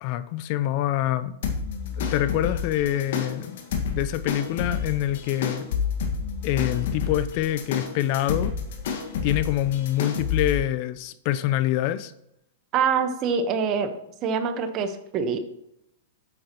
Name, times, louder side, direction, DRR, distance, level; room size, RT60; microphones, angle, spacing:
voice 1, 0.0-1.4 2.0-3.6 3.9-5.7 6.4-8.5 9.2-12.1, left 13 dB, 50° left, 14 dB, 0.5 m, -26 dB
sound 1, 1.4-10.6, left 6 dB, 70° left, 1.6 m, -29 dB
voice 2, 12.7-13.9 14.2-15.4, right 6 dB, 35° right, 9 dB, 1.0 m, -25 dB
8.9 x 7.8 x 3.0 m, 0.78 s
hypercardioid pair, 130°, 0 cm